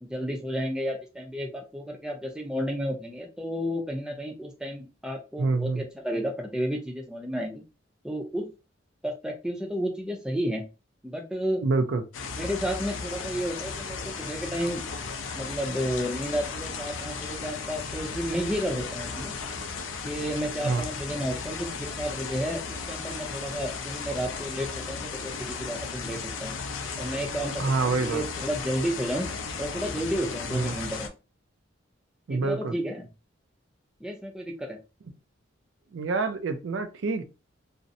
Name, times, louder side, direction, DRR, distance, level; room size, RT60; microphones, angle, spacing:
voice 1, 0.0-7.6 8.0-8.5 9.0-10.6 11.0-11.6 12.4-14.8 15.3-19.3 20.0-26.5 27.0-29.3 29.6-31.1 32.3-33.1 34.0-34.8, equal, 5° right, 0.4 m, -32 dB
voice 2, 5.4-5.8 11.6-12.0 20.6-20.9 27.6-28.2 30.5-30.7 32.3-32.7 35.9-37.2, right 3 dB, 70° right, 0.4 m, -26 dB
sound 1, 12.1-31.1, left 5 dB, 85° left, 0.4 m, -35 dB
2.5 x 2.0 x 2.6 m
head